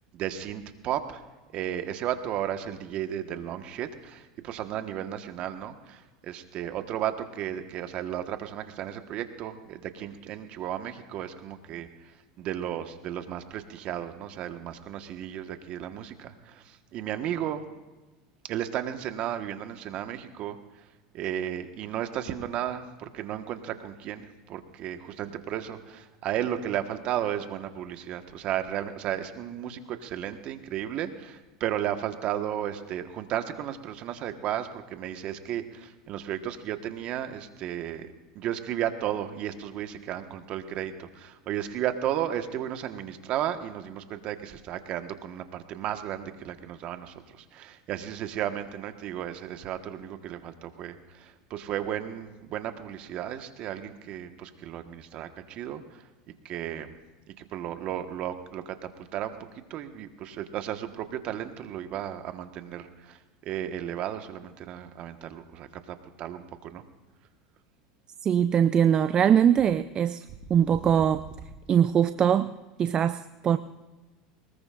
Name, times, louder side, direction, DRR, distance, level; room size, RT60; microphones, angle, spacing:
voice 1, 0.1-1.2 1.5-11.9 12.4-17.6 18.5-20.6 21.1-56.0 56.4-57.0 57.4-59.4 59.7-66.8, right 11 dB, 50° right, 7 dB, 1.4 m, -34 dB
voice 2, 68.2-71.2 71.7-72.5 72.8-73.6, right 8 dB, 35° right, 12 dB, 0.5 m, -22 dB
23.0 x 20.5 x 2.6 m, 1.2 s
hypercardioid pair, 100°, 2 cm